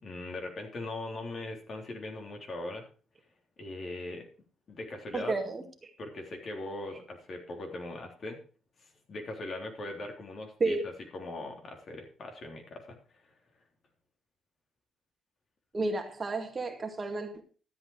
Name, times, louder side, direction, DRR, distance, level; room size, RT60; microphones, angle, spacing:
voice 1, 0.0-2.8 3.6-4.3 4.7-5.4 6.0-8.4 8.8-13.0 13.2-13.3, left 2 dB, 50° left, 3.5 m, -40 dB
voice 2, 5.1-5.9 10.6-10.8 15.7-17.4, right 3 dB, 35° right, 2.2 m, -32 dB
13.0 x 8.4 x 4.8 m
cardioid pair, 90°, 0 cm